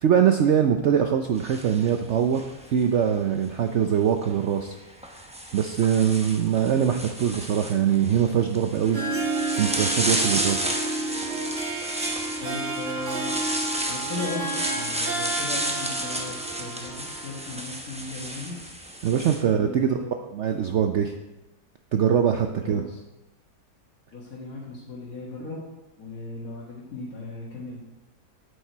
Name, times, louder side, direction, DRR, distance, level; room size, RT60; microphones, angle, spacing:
voice 1, 0.0-2.4 2.7-4.8 5.5-9.0 9.5-10.7 19.0-21.1 21.9-22.8, right 8 dB, 80° right, 5 dB, 0.6 m, -23 dB
sound 1, 1.4-2.9 4.1-4.3 5.0-19.4, right 1 dB, 10° right, 0.4 m, -32 dB
voice 2, 6.7-7.0 12.4-13.4 13.9-14.5 14.7-18.6 19.4-20.2 22.6-23.0 24.1-25.6 26.0-27.8, left 2 dB, 50° left, -6 dB, 2.1 m, -37 dB
Harp, 8.8-17.5, right 3 dB, 45° right, 1.3 m, -31 dB
8.6 x 8.2 x 4.6 m, 0.99 s
omnidirectional pair, 1.9 m